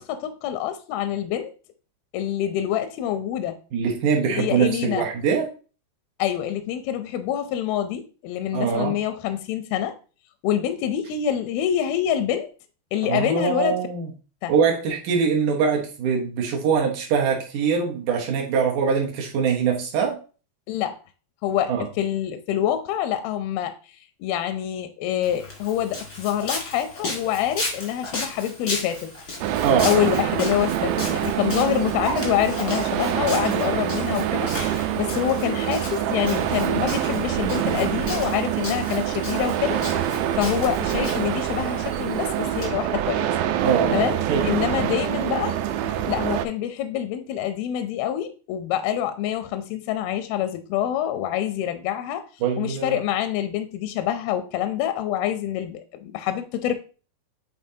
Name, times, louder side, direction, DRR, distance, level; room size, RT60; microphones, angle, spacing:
voice 1, 0.0-1.5 2.1-3.6 4.2-5.1 6.2-9.9 10.4-12.5 12.9-13.7 14.4-14.5 20.7-21.0 21.4-23.7 24.2-29.1 29.8-39.8 40.1-43.4 43.9-45.6 46.1-52.2 52.6-56.8, left 10 dB, 85° left, 2.2 m, -26 dB
voice 2, 3.7-5.5 8.5-8.9 13.0-14.1 14.5-20.2 21.7-21.9 29.6-30.1 43.6-44.5 52.4-53.0, right 6 dB, 70° right, 2.0 m, -23 dB
Walk footsteps, 25.2-42.7, left 2 dB, 55° left, 1.1 m, -35 dB
sound 1, 29.4-46.5, right 11 dB, 90° right, 2.7 m, -25 dB
8.8 x 4.0 x 2.7 m
omnidirectional pair, 4.9 m